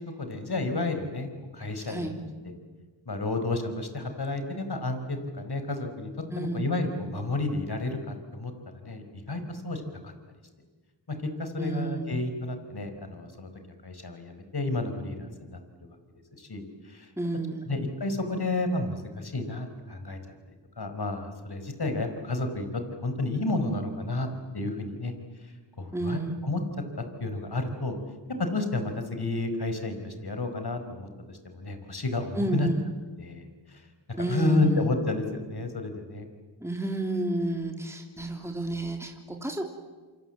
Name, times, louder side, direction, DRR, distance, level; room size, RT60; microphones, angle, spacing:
voice 1, 0.0-2.1 2.4-2.5 3.1-6.1 6.4-8.5 8.8-10.1 11.1-13.5 13.8-15.6 16.4-17.1 17.7-20.2 20.8-25.1 25.4-26.6 27.2-28.0 28.4-32.7 33.2-36.3, left 2 dB, 50° left, 7 dB, 5.1 m, -31 dB
voice 2, 1.8-2.2 6.3-6.7 11.6-12.2 17.2-17.7 25.9-26.4 32.3-32.8 34.2-34.9 36.6-39.7, right 2 dB, 5° right, 2 dB, 3.3 m, -30 dB
27.0 x 27.0 x 8.2 m, 1.4 s
cardioid pair, 50°, 49 cm